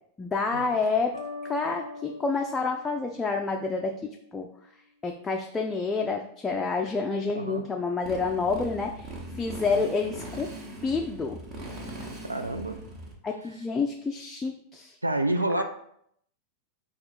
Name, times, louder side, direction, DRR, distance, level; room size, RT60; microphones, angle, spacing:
voice 1, 0.2-1.1 1.4-4.5 5.0-9.1 9.3-10.5 10.8-11.4 13.2-15.0 15.6-15.7, left 4 dB, 15° left, 2 dB, 0.3 m, -28 dB
sound 1, 1.1-4.0, left 3 dB, 85° left, 0.4 m, -42 dB
Motorcycle, 8.0-13.1, right 1 dB, 35° right, 0.9 m, -40 dB
voice 2, 12.3-12.8 15.0-15.6, right 1 dB, 85° right, 8 dB, 0.3 m, -28 dB
4.3 x 2.4 x 4.2 m, 0.71 s
figure-of-eight pair, 90°, 0 cm